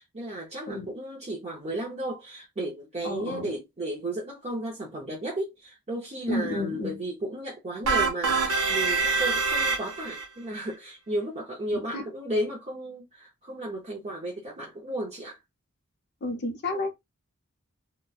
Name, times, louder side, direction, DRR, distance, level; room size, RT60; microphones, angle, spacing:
voice 1, 0.0-15.4, right 1 dB, 30° right, 0.6 m, -34 dB
voice 2, 3.0-3.5 6.3-7.0 11.9-12.0 16.2-16.9, left 2 dB, 50° left, 0.6 m, -31 dB
sound 1, 7.9-10.2, right 4 dB, 70° right, 0.7 m, -25 dB
2.9 x 2.1 x 2.3 m
head